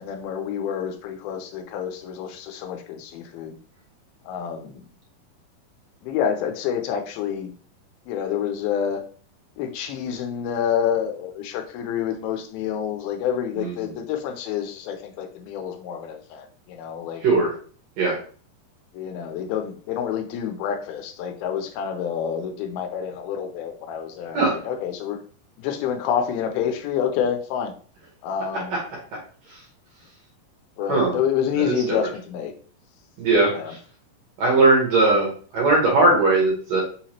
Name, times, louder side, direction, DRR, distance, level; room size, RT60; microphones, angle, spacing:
voice 1, 0.0-3.6 4.3-4.8 6.0-7.5 8.1-9.0 9.6-17.2 18.9-25.2 25.6-27.7 28.2-28.8 30.8-32.5 33.5-33.7, left 8 dB, 85° left, 5 dB, 2.5 m, -28 dB
voice 2, 13.6-13.9 17.2-17.5 18.0-18.2 24.3-24.6 28.7-28.8 29.5-29.6 30.9-31.2 31.6-32.0 33.2-33.8 34.4-36.8, right 2 dB, 65° right, -3 dB, 1.9 m, -20 dB
5.6 x 2.9 x 2.9 m, 0.43 s
omnidirectional pair, 4.3 m